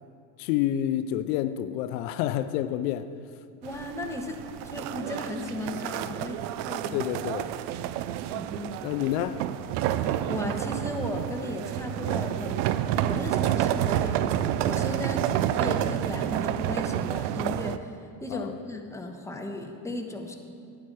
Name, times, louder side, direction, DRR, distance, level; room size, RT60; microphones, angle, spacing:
voice 1, 0.4-3.1 6.9-7.5 8.8-9.4 18.3-18.5, left 12 dB, 75° left, 0.6 m, -28 dB
voice 2, 3.6-4.4 4.6-7.0 8.3-8.7 9.9-12.6 13.0-20.3, left 2 dB, 5° left, 1.2 m, -36 dB
sound 1, 3.6-17.8, right 11 dB, 70° right, 0.6 m, -29 dB
11.0 x 9.2 x 4.7 m
supercardioid pair, 90°, 47 cm